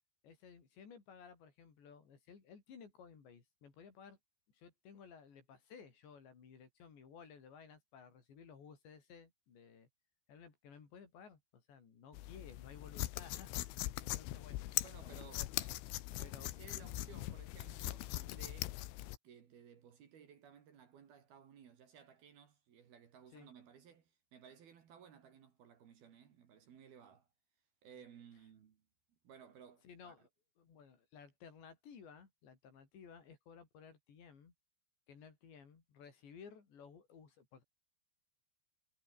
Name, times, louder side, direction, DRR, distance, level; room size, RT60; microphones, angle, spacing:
voice 1, 0.2-4.2 4.5-9.9 10.3-14.6 15.0-15.5 16.2-16.5 23.3-23.5 29.8-30.3 30.6-34.5 35.1-37.6, left 6 dB, 60° left, 6.7 m, -57 dB
sound 1, 12.1-19.2, left 16 dB, 80° left, 3.6 m, -41 dB
voice 2, 14.8-18.8 19.2-27.3 27.8-28.8 29.2-30.3, right 7 dB, 55° right, 3.9 m, -59 dB
omnidirectional pair, 5.7 m